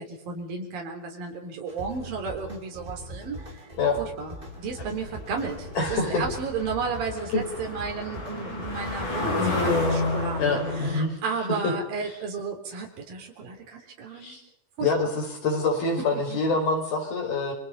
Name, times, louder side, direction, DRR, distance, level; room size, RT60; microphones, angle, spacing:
voice 1, 0.0-3.6 4.0-14.4 14.8-15.1 16.1-16.4, right 5 dB, 70° right, 1 dB, 5.4 m, -33 dB
sound 1, 1.7-9.7, equal, 15° right, 4.0 m, -42 dB
sound 2, 4.5-11.0, left 2 dB, 55° left, 7.9 m, -30 dB
voice 2, 5.8-6.2 7.3-7.4 10.4-11.2 11.6-11.7 14.1-14.4 14.8-17.5, left 3 dB, 75° left, 2 dB, 7.5 m, -26 dB
29.0 x 24.0 x 5.6 m, 0.67 s
omnidirectional pair, 4.3 m